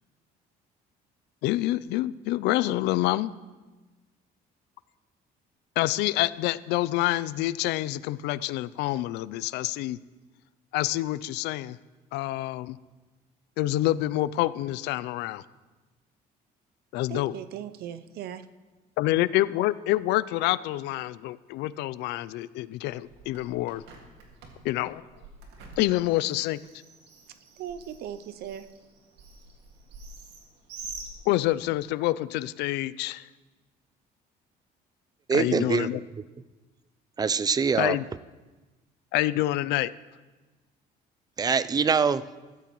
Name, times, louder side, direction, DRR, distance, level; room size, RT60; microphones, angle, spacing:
voice 1, 1.4-3.3 5.8-10.0 10.7-11.8 12.1-12.8 13.6-15.4 16.9-17.3 19.0-23.8 24.6-25.0 25.8-26.6 31.3-33.3 35.3-36.0 37.8-38.0 39.1-39.9, left 16 dB, 90° left, 18 dB, 0.4 m, -27 dB
voice 2, 17.1-18.5 27.6-28.7, right 10 dB, 70° right, 12 dB, 0.6 m, -38 dB
Bird, 22.9-31.8, right 3 dB, 90° right, 2.0 m, -47 dB
voice 3, 35.3-35.9 37.2-38.0 41.4-42.2, right 5 dB, 25° right, 15 dB, 0.4 m, -24 dB
15.5 x 13.0 x 3.1 m, 1.2 s
cardioid pair, 110°, 17 cm